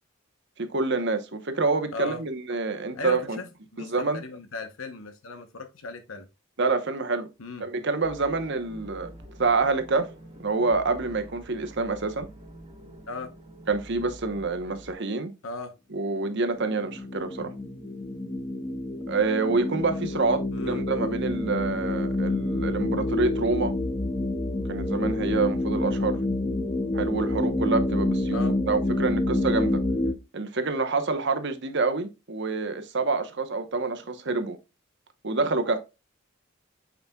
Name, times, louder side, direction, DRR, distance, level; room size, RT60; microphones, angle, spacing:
voice 1, 0.6-3.4 3.8-4.2 6.6-7.3 7.6-9.1 9.4-10.1 10.4-12.3 13.7-15.3 15.9-17.5 19.1-23.7 24.7-26.2 26.9-28.4 28.7-29.8 30.3-34.6 35.2-35.8, right 3 dB, 55° right, 1.0 m, -27 dB
voice 2, 1.9-2.2 2.9-6.3 7.4-7.6 13.1-13.3 15.4-15.7 20.5-20.8 28.3-28.5, left 3 dB, 75° left, 1.0 m, -37 dB
sound 1, 8.0-14.9, equal, 25° right, 1.7 m, -46 dB
sound 2, 16.3-30.1, left 2 dB, 30° left, 0.9 m, -28 dB
8.2 x 5.2 x 2.3 m
head